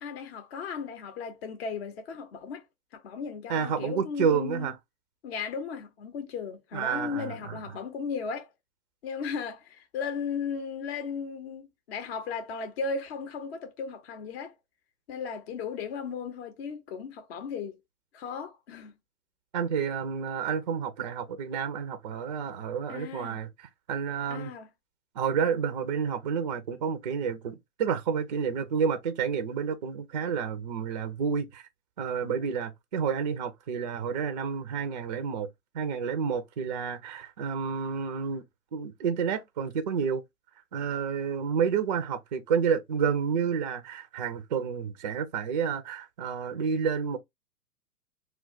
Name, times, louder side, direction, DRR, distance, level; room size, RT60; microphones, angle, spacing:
voice 1, 0.0-2.6 2.9-4.7 5.2-8.5 9.0-14.5 15.1-17.8 18.1-18.9 22.9-23.4 24.3-24.7 32.4-32.5, left 5 dB, 45° left, 0.7 m, -36 dB
voice 2, 3.5-4.7 6.7-7.6 19.5-23.5 23.9-24.5 25.2-31.6 32.0-35.5 35.7-38.4 38.7-40.2 40.7-47.2, right 6 dB, 30° right, 0.4 m, -30 dB
2.2 x 2.2 x 3.8 m
figure-of-eight pair, 115°, 45 cm